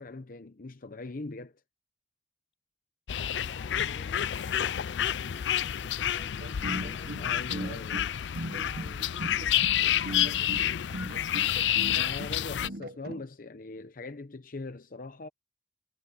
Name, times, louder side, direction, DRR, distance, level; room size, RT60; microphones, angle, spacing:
voice 1, 0.0-1.6 7.2-8.1 11.6-15.3, left 3 dB, 55° left, 0.8 m, -42 dB
sound 1, 3.1-12.7, left 10 dB, 90° left, 0.4 m, -29 dB
voice 2, 3.2-7.8 8.1-11.3, left 1 dB, 35° left, 3.8 m, -55 dB
sound 2, 6.4-13.2, right 1 dB, 60° right, 1.4 m, -39 dB
head